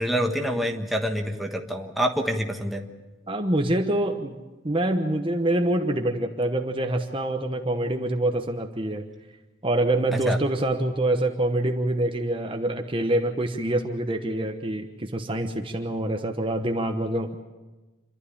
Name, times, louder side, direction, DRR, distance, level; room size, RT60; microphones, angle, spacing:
voice 1, 0.0-2.9 10.3-10.4, equal, ahead, 2 dB, 1.3 m, -26 dB
voice 2, 3.3-4.4 4.6-9.0 9.6-17.4, right 1 dB, 25° right, 4 dB, 1.1 m, -25 dB
28.5 x 12.5 x 8.6 m, 1.2 s
head